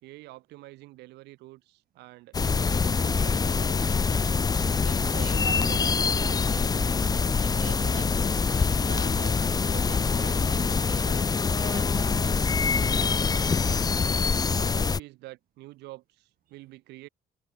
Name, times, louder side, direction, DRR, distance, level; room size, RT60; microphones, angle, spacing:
voice 1, 0.0-4.2 13.5-14.1 14.5-17.1, right 19 dB, 85° right, 1.8 m, -47 dB
sound 1, 2.3-15.0, left 5 dB, 25° left, 0.8 m, -25 dB
voice 2, 3.9-9.4 9.7-12.8 13.3-13.7, right 11 dB, 60° right, 2.2 m, -45 dB
cardioid pair, 110°, 17 cm